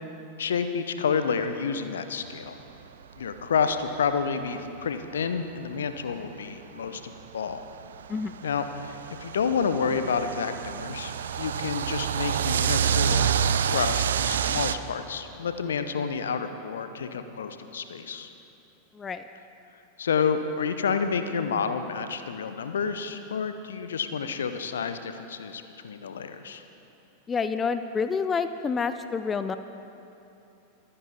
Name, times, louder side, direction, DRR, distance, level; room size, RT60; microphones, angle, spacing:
voice 1, 0.4-2.6 3.2-7.6 8.4-18.3 20.0-26.6, left 6 dB, 65° left, 9 dB, 0.8 m, -29 dB
sound 1, 3.8-3.9 4.4-4.5 5.6-5.7 7.1-14.8, right 8 dB, 65° right, 0.4 m, -27 dB
voice 2, 18.9-19.2 27.3-29.6, left 5 dB, 20° left, 10 dB, 0.4 m, -28 dB
23.5 x 9.7 x 4.1 m, 2.8 s
figure-of-eight pair, 90°, 0 cm